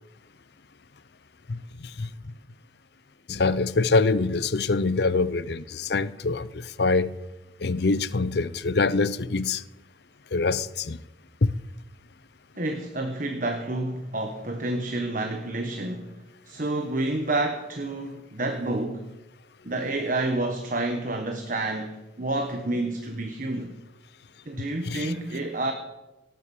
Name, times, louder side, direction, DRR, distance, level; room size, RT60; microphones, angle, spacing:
voice 1, 1.5-2.1 3.3-7.1 7.6-9.6 10.3-11.0 11.4-11.5 24.6-25.1, left 3 dB, 55° left, 0.6 m, -25 dB
voice 2, 12.6-19.1 19.6-23.7 24.5-25.7, right 2 dB, 45° right, 1.3 m, -29 dB
18.0 x 9.6 x 7.3 m
head